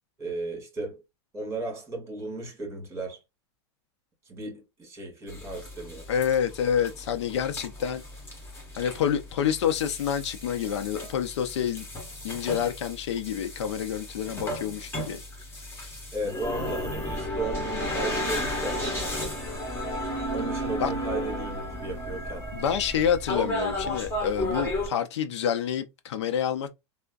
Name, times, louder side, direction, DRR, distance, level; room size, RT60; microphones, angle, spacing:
voice 1, 0.2-1.0 1.3-3.2 4.3-6.0 16.1-18.9 20.3-22.5, right 2 dB, 20° right, 1.8 m, -35 dB
sound 1, 5.3-24.9, left 1 dB, 15° left, 1.5 m, -34 dB
voice 2, 6.1-8.0 8.8-11.9 12.2-15.2 20.8-20.9 22.5-26.7, left 8 dB, 85° left, 0.5 m, -28 dB
3.4 x 2.1 x 2.3 m
supercardioid pair, 130°, 14 cm